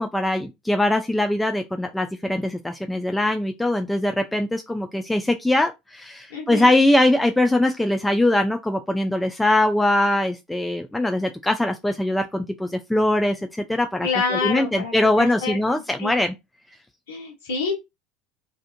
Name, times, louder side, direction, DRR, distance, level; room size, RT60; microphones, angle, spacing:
voice 1, 0.0-16.3, left 1 dB, 5° left, 0.3 m, -22 dB
voice 2, 6.3-6.7 14.0-16.2 17.1-17.7, left 5 dB, 80° left, 0.8 m, -28 dB
2.6 x 2.3 x 2.4 m
hypercardioid pair, 75°, 0 cm